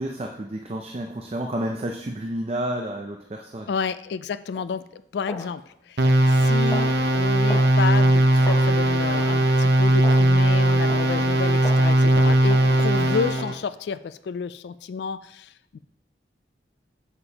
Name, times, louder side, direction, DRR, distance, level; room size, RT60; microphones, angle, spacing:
voice 1, 0.0-3.7, right 1 dB, 35° right, 2 dB, 0.5 m, -30 dB
voice 2, 3.7-6.0 6.3-15.8, left 5 dB, 70° left, 14 dB, 0.3 m, -31 dB
sound 1, 4.5-4.7 5.3-5.5 6.0-6.3 6.7-6.9 7.5-7.7 8.4-8.7 9.3-9.5 10.0-10.3 10.9-11.1 11.6-11.9 12.5-12.7 13.4-13.6, left 1 dB, 20° left, 0.8 m, -36 dB
sound 2, 6.0-13.5, right 1 dB, 65° right, 0.8 m, -19 dB
8.1 x 6.9 x 2.9 m, 0.74 s
head